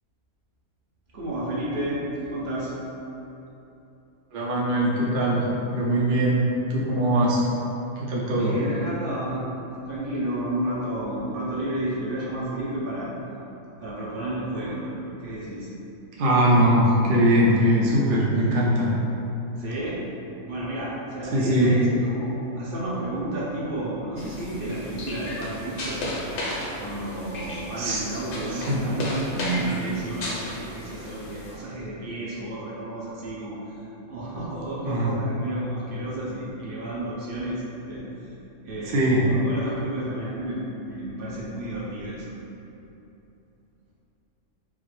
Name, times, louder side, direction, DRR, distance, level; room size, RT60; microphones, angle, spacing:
voice 1, 1.1-2.7 8.4-9.5 9.8-13.1 13.8-14.8 15.2-15.7 19.6-20.0 20.5-26.0 26.8-33.6 34.1-38.3 38.6-42.2, right 1 dB, 45° right, -7 dB, 0.8 m, -31 dB
voice 2, 4.3-6.4 6.7-7.4 8.0-8.5 16.2-18.9 21.3-21.7 27.8-28.0 28.7-28.8 34.8-35.1 38.9-39.2, right 1 dB, 80° right, -5 dB, 0.4 m, -21 dB
sound 1, 24.2-31.6, left 1 dB, 55° left, 0.6 m, -34 dB
4.9 x 2.0 x 3.1 m, 3.0 s
omnidirectional pair, 1.5 m